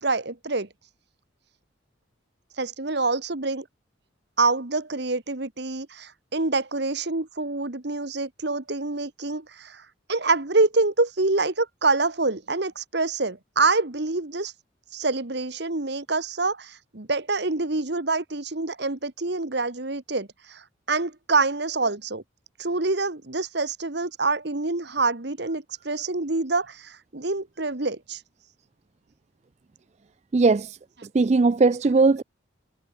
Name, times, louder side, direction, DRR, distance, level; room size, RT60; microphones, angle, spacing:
voice 1, 0.0-0.7 2.6-3.7 4.4-14.5 14.9-22.2 22.6-28.2, right 3 dB, 55° right, 1.4 m, -26 dB
voice 2, 30.3-30.8 31.1-32.2, right 3 dB, 35° right, 0.4 m, -19 dB
head